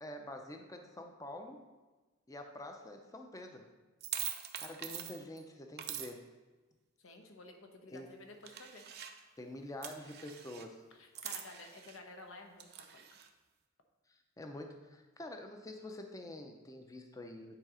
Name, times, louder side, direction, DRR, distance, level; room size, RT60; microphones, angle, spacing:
voice 1, 0.0-1.7 2.3-3.7 4.6-6.3 7.9-8.1 9.4-10.8 14.1-17.6, left 1 dB, 15° left, 4 dB, 0.5 m, -47 dB
sound 1, 4.0-5.4 5.8-6.1 8.5-9.2 9.8-10.7 11.2-12.0 12.6-13.3, right 10 dB, 55° right, 0.6 m, -43 dB
voice 2, 7.0-8.8 11.0-13.0, left 2 dB, 85° left, 4 dB, 1.0 m, -52 dB
9.0 x 4.0 x 4.9 m, 1.2 s
head